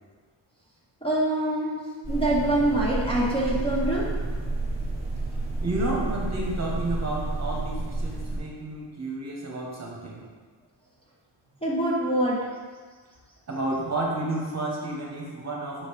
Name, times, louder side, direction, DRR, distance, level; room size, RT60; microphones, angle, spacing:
voice 1, 1.0-1.8 2.1-4.1 11.6-12.4, right 1 dB, 10° left, -6 dB, 0.8 m, -24 dB
sound 1, 2.0-8.4, right 2 dB, 15° right, 1.4 m, -30 dB
voice 2, 5.6-10.3 13.5-15.9, right 2 dB, 35° right, -3 dB, 1.1 m, -31 dB
5.8 x 5.1 x 3.3 m, 1.5 s
wide cardioid pair, 160°, 46 cm